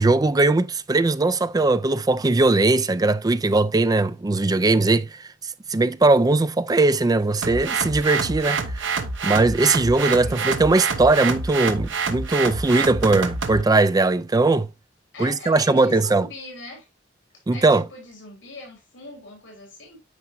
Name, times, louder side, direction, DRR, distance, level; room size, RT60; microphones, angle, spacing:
voice 1, 0.0-5.2 5.7-14.7 15.2-16.3 17.5-17.8, right 2 dB, 20° right, 0.4 m, -20 dB
sound 1, 7.4-13.6, right 4 dB, 75° right, 1.0 m, -27 dB
voice 2, 15.1-16.9 17.5-20.0, left 2 dB, 80° left, 3.6 m, -40 dB
9.4 x 5.5 x 2.7 m
head